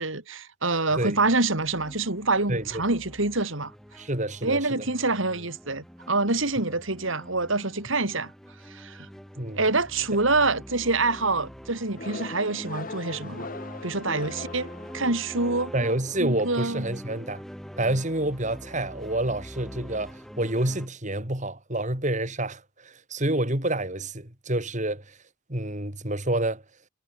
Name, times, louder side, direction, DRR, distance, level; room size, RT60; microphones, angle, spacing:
voice 1, 0.0-3.7 4.4-8.3 8.7-9.1 9.6-13.5 13.8-15.7 16.2-16.9, right 3 dB, 70° right, 3.9 m, -26 dB
sound 1, 0.9-20.9, equal, ahead, 2.4 m, -44 dB
voice 2, 2.5-2.8 4.0-4.9 9.4-9.6 15.7-17.4 17.8-25.2 25.5-26.6, right 1 dB, 35° right, 4.6 m, -28 dB
sound 2, 12.0-15.5, left 3 dB, 40° left, 1.8 m, -40 dB
head